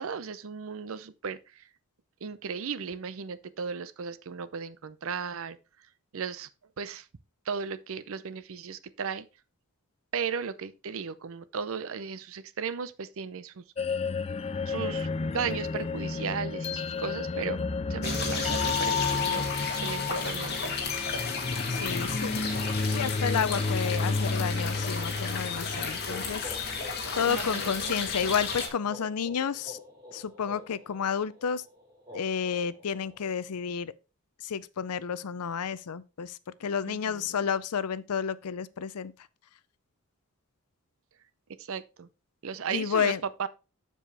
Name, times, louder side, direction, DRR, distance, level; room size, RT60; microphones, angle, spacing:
voice 1, 0.0-1.6 2.2-5.6 6.1-6.5 6.8-7.1 7.5-9.3 10.1-14.0 14.7-17.6 17.9-20.7 27.3-28.1 36.9-37.3 41.6-42.1 42.4-43.5, right 6 dB, 60° right, 0.6 m, -36 dB
sound 1, 13.8-26.7, left 4 dB, 25° left, 0.4 m, -31 dB
sound 2, 18.0-28.7, left 4 dB, 50° left, 2.0 m, -33 dB
voice 2, 21.7-22.4 22.9-26.6 27.2-29.8 30.1-31.6 32.1-33.9 34.4-39.1 42.7-43.2, left 7 dB, 85° left, 0.5 m, -31 dB
sound 3, 25.7-33.4, left 1 dB, 15° right, 4.2 m, -47 dB
7.4 x 6.9 x 3.4 m
head